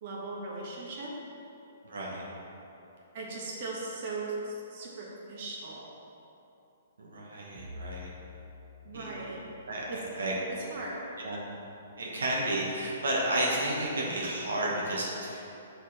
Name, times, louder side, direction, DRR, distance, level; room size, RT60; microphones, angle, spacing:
voice 1, 0.0-1.1 3.1-5.9 8.8-9.5 9.9-10.0 10.5-11.0, right 3 dB, 50° right, -4 dB, 1.3 m, -38 dB
voice 2, 1.8-2.3 7.0-8.1 8.9-9.3 9.7-10.3 11.2-11.4 12.0-15.4, right 1 dB, 85° right, -4 dB, 1.3 m, -32 dB
Bowed string instrument, 7.6-11.8, left 3 dB, 5° left, 1.0 m, -50 dB
6.4 x 4.2 x 4.2 m, 2.9 s
hypercardioid pair, 145°, 0 cm